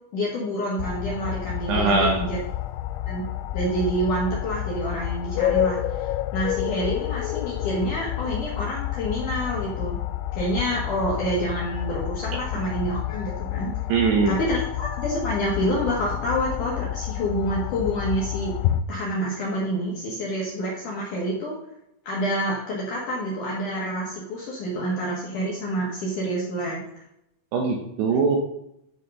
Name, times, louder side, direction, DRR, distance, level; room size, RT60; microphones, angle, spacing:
voice 1, 0.1-2.4 3.1-3.2 3.5-10.0 10.3-13.7 14.3-18.5 18.9-21.6 22.0-26.8, equal, 65° left, -3 dB, 2.1 m, -28 dB
sound 1, 0.8-18.8, left 14 dB, 85° left, 2.6 m, -29 dB
voice 2, 1.7-2.2 13.9-14.4 27.5-28.4, right 4 dB, 75° right, 2 dB, 2.6 m, -21 dB
10.0 x 5.0 x 5.4 m, 0.80 s
omnidirectional pair, 5.7 m